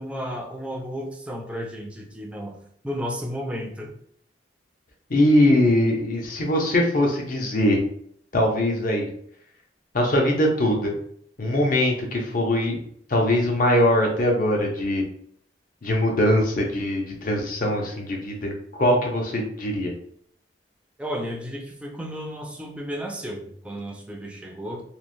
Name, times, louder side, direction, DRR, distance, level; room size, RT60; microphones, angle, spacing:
voice 1, 0.0-2.6 2.8-3.9 21.0-24.8, equal, 5° right, 1 dB, 0.3 m, -33 dB
voice 2, 5.1-7.8 8.3-9.1 9.9-11.0 11.4-12.8 13.1-15.0 15.8-18.5 18.8-19.9, left 1 dB, 50° left, 1 dB, 0.6 m, -21 dB
2.9 x 2.0 x 2.5 m, 0.65 s
head